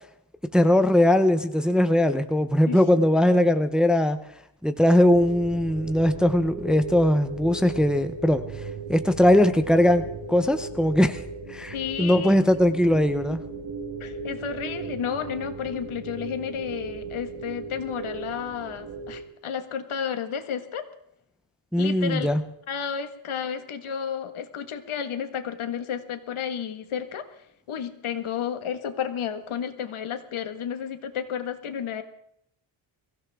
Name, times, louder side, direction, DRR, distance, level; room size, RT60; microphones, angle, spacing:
voice 1, 0.5-4.2 4.6-11.2 11.5-13.4 21.7-22.4, left 1 dB, ahead, 8 dB, 0.7 m, -20 dB
voice 2, 2.7-3.1 3.8-3.9 11.7-12.4 14.0-20.8 21.8-22.3 22.7-27.3 27.7-32.0, left 8 dB, 80° left, 8 dB, 1.8 m, -32 dB
sound 1, 5.0-19.2, right 4 dB, 65° right, 6.8 m, -37 dB
23.5 x 16.0 x 3.6 m, 0.74 s
wide cardioid pair, 160°, 49 cm